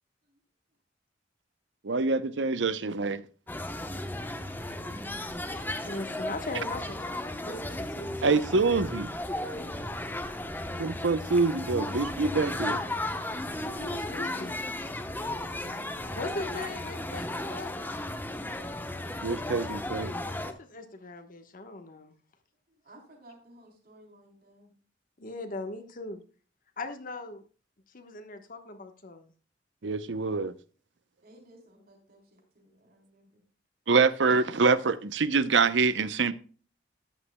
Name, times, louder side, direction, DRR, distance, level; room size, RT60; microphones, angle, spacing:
voice 1, 1.8-3.2 8.2-9.1 10.8-12.8 19.2-20.1 29.8-30.5 33.9-36.3, right 4 dB, 80° right, 0.7 m, -25 dB
sound 1, 3.5-20.5, left 1 dB, 10° left, 0.9 m, -35 dB
voice 2, 5.8-8.6 9.5-9.7 13.8-14.5 16.1-17.7 20.4-22.1 25.2-26.2 26.8-27.4 27.9-29.3, left 2 dB, 50° left, 1.2 m, -39 dB
voice 3, 22.8-24.7 31.2-33.4, right 1 dB, 55° right, 3.6 m, -56 dB
13.5 x 9.8 x 2.2 m
head